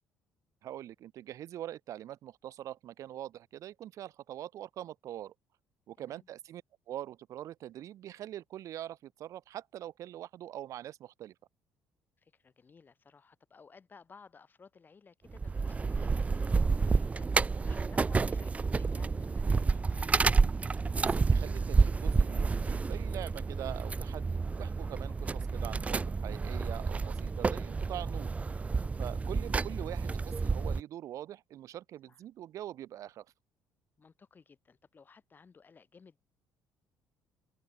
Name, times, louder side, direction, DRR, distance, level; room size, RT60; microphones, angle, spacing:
voice 1, 0.6-5.3 5.9-11.3 21.0-28.3 29.0-33.3, right 12 dB, 65° right, 0.7 m, -43 dB
voice 2, 6.0-6.3 12.2-17.3 17.6-20.1 32.1-32.2 34.0-36.2, left 5 dB, 35° left, 4.1 m, -57 dB
sound 1, 15.3-30.8, right 4 dB, 25° right, 0.5 m, -30 dB
open air
cardioid pair, 90°, 6 cm